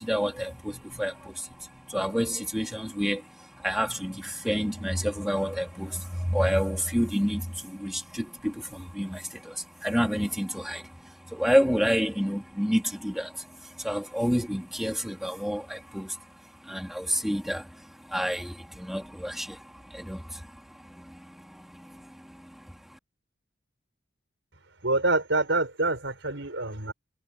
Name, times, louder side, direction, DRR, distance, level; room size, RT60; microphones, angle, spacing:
voice 1, 0.0-23.0, equal, ahead, 3.5 m, -30 dB
voice 2, 24.8-26.9, right 2 dB, 80° right, 4.8 m, -26 dB
head